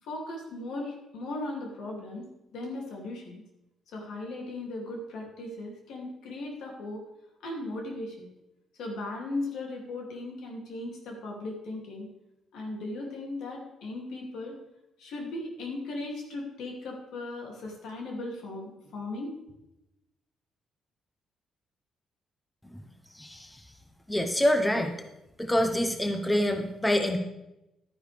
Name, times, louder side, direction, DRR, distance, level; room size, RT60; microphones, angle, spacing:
voice 1, 0.0-3.4 3.9-7.0 7.4-8.3 8.8-12.1 12.5-14.6 15.0-19.3, left 2 dB, 80° left, 0 dB, 2.7 m, -37 dB
voice 2, 23.1-23.6 24.1-24.9 25.4-27.2, left 1 dB, 10° left, 6 dB, 1.0 m, -26 dB
11.5 x 10.0 x 3.5 m, 0.89 s
cardioid pair, 90°, 0 cm